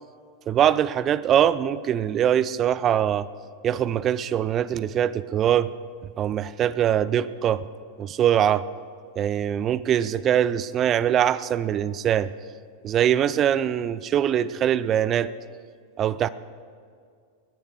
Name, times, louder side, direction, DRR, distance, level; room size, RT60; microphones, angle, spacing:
voice 1, 0.5-3.3 3.6-5.7 6.2-7.6 8.0-8.7 9.2-12.3 12.8-15.3 16.0-16.3, right 10 dB, 30° right, 18 dB, 0.4 m, -22 dB
20.0 x 10.0 x 4.8 m, 2.2 s
figure-of-eight pair, 90°, 0 cm